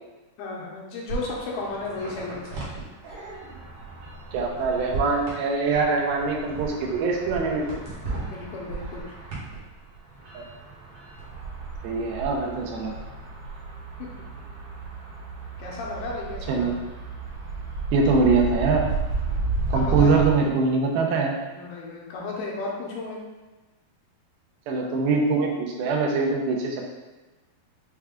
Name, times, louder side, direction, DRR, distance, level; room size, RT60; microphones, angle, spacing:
voice 1, 0.4-2.8 8.1-9.1 14.0-14.1 15.6-16.8 19.3-20.1 21.5-23.2, left 3 dB, 80° left, -3 dB, 2.7 m, -34 dB
sound 1, 1.1-9.6 9.9-20.3, right 3 dB, 60° right, 1.5 m, -33 dB
voice 2, 4.3-7.6 10.3-10.4 11.8-12.9 16.5-16.8 17.9-18.8 19.7-21.4 24.7-26.8, right 4 dB, 85° right, 0 dB, 2.5 m, -23 dB
6.6 x 2.2 x 3.6 m, 1.2 s
omnidirectional pair, 4.3 m